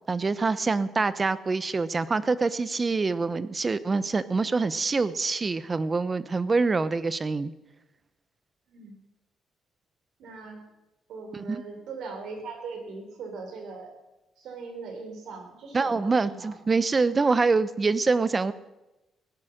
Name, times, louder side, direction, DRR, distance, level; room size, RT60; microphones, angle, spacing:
voice 1, 0.1-7.5 11.5-11.6 15.7-18.5, right 4 dB, 30° right, 15 dB, 0.8 m, -25 dB
voice 2, 8.7-9.0 10.2-10.6 11.1-13.9 14.4-16.6, right 4 dB, 75° right, 4 dB, 3.7 m, -40 dB
17.0 x 9.8 x 6.5 m, 1.0 s
cardioid pair, 90°, 0 cm